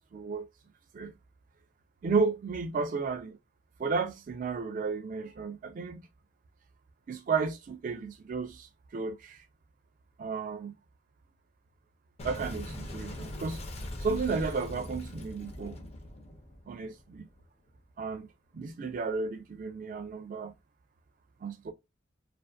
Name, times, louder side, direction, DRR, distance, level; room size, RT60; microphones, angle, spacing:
voice 1, 0.1-0.5 0.9-1.1 2.0-3.4 3.8-6.0 7.1-9.4 10.2-10.7 12.2-13.6 14.0-15.8 16.7-17.3 18.0-18.3 18.5-20.5 21.4-21.7, right 4 dB, 45° right, 0.3 m, -33 dB
Boom, 12.2-17.4, left 1 dB, 35° left, 0.5 m, -41 dB
2.4 x 2.4 x 2.2 m
head